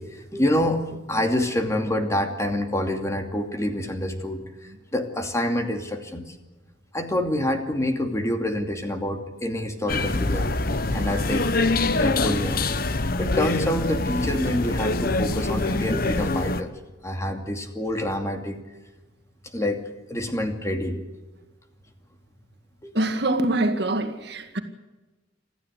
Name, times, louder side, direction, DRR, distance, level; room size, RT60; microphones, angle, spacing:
voice 1, 0.0-6.3 6.9-10.5 10.9-11.5 11.9-12.6 13.2-16.7 17.0-18.6 19.5-19.8 20.1-21.0 22.8-23.0, left 1 dB, 15° left, 2.6 m, -27 dB
sound 1, 9.9-16.6, left 2 dB, 50° left, 1.2 m, -24 dB
voice 2, 23.0-24.6, right 2 dB, 60° right, 2.1 m, -24 dB
27.0 x 14.5 x 8.2 m
head